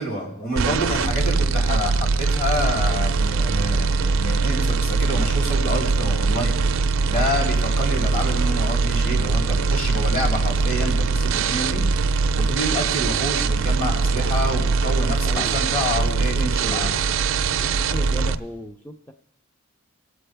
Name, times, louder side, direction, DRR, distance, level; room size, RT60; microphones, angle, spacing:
voice 1, 0.0-6.6 7.1-11.8 12.4-16.9, equal, 40° left, -2 dB, 3.3 m, -28 dB
sound 1, 0.6-18.3, right 4 dB, 65° right, 0.5 m, -22 dB
voice 2, 15.2-15.6 15.9-17.2 17.6-19.1, equal, 5° left, 3 dB, 0.5 m, -36 dB
24.5 x 8.4 x 3.4 m, 0.97 s
head